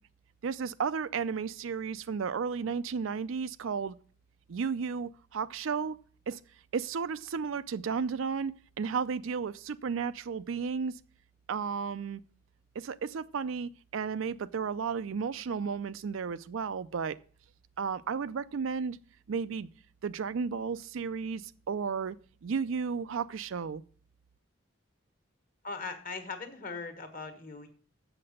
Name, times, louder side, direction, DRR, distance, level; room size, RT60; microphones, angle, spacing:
voice 1, 0.4-3.9 4.5-6.0 6.3-6.4 6.7-8.5 8.8-10.9 11.5-12.2 12.8-17.2 17.8-19.0 19.3-19.7 20.0-22.2 22.4-23.8, right 6 dB, 75° right, 0.4 m, -33 dB
voice 2, 25.6-27.7, left 4 dB, 40° left, 1.3 m, -39 dB
7.7 x 5.9 x 6.4 m
head